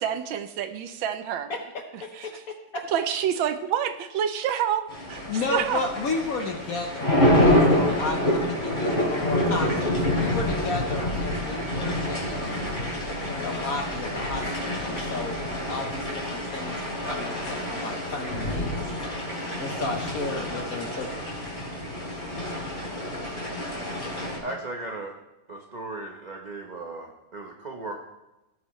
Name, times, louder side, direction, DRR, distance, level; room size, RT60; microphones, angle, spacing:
voice 1, 0.0-1.5 2.2-2.3 2.9-5.2 5.5-5.8, right 9 dB, 75° right, 10 dB, 1.4 m, -27 dB
voice 2, 1.5-2.8 5.3-12.7 13.3-15.4 15.7-18.9 19.6-21.1, left 3 dB, 55° left, 4 dB, 1.0 m, -33 dB
sound 1, 4.9-24.4, left 1 dB, 25° left, 3.4 m, -27 dB
voice 3, 24.4-25.1 25.5-28.0, right 2 dB, 45° right, 1 dB, 0.5 m, -36 dB
16.5 x 8.1 x 3.2 m, 0.99 s
omnidirectional pair, 2.3 m